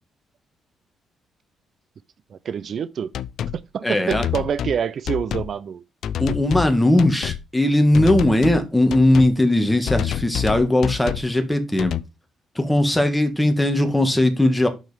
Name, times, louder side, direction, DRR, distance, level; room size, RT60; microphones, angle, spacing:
voice 1, 2.3-3.1 3.7-5.8, right 7 dB, 55° right, 0.3 m, -26 dB
sound 1, 3.1-3.6 4.1-4.8 5.1-5.5 6.0-6.7 7.0-7.4 7.9-8.6 8.9-9.3 9.9-11.3 11.8-12.0, left 9 dB, 70° left, 0.4 m, -27 dB
voice 2, 3.8-4.3 6.2-11.9 12.5-14.7, left 1 dB, 10° left, 1.5 m, -19 dB
6.5 x 6.4 x 3.3 m
cardioid pair, 90°, 0 cm